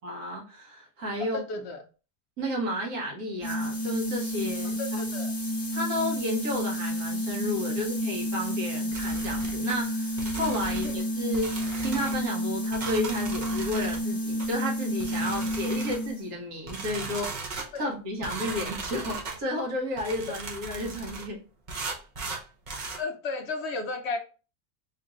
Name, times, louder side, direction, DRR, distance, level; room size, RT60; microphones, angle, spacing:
voice 1, 0.0-1.4 2.4-5.0 5.7-21.4, left 1 dB, 75° right, 1.8 m, -32 dB
voice 2, 1.2-1.8 4.8-5.3 10.8-10.9 17.7-17.9 23.0-24.2, left 3 dB, 65° left, 0.6 m, -33 dB
sound 1, 3.4-16.3, equal, 25° left, 0.4 m, -30 dB
sound 2, 8.9-9.8 10.2-11.0 11.3-12.2 12.7-14.0 14.4-14.5 15.0-16.1 16.7-17.7 18.2-19.4 20.0-21.3 21.7-23.0, right 3 dB, 40° right, 0.7 m, -37 dB
4.3 x 2.5 x 3.1 m
omnidirectional pair, 1.6 m